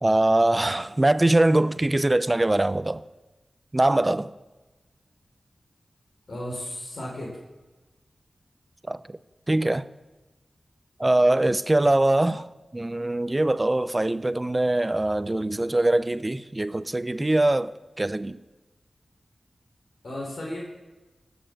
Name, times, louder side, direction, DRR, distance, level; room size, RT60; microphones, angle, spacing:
voice 1, 0.0-3.0 3.7-4.3 8.9-9.2 9.5-9.9 11.0-12.5 12.7-18.4, right 1 dB, 25° right, 0.6 m, -22 dB
voice 2, 6.3-7.4 11.0-11.2 20.0-20.6, left 1 dB, 75° left, 3.5 m, -35 dB
16.5 x 7.1 x 7.5 m
cardioid pair, 55°, 0 cm